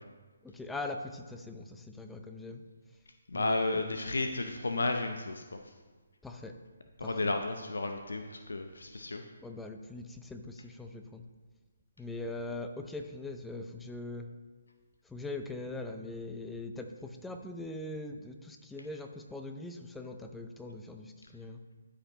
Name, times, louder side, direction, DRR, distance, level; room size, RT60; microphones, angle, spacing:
voice 1, 0.4-2.6 3.3-3.9 6.2-6.6 7.0-7.4 9.4-11.2 12.0-14.3 15.0-21.6, left 2 dB, 5° left, 5 dB, 0.5 m, -41 dB
voice 2, 3.3-5.4 7.0-9.2, left 2 dB, 70° left, 5 dB, 0.6 m, -32 dB
12.5 x 5.0 x 2.9 m, 1.4 s
figure-of-eight pair, 140°, 0 cm